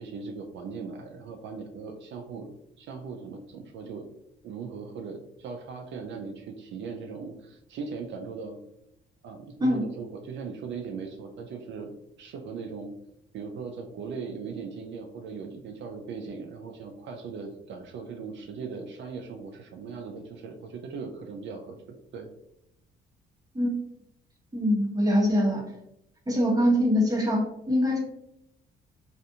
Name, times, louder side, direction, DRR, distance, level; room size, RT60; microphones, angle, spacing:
voice 1, 0.0-2.5 2.8-4.1 4.4-8.6 9.2-11.9 12.2-12.9 13.3-21.8 22.1-22.3, right 5 dB, 70° right, 3 dB, 0.4 m, -39 dB
voice 2, 24.5-25.6 26.3-28.0, equal, 20° right, -3 dB, 1.0 m, -23 dB
2.4 x 2.4 x 2.7 m, 0.81 s
cardioid pair, 90°, 20 cm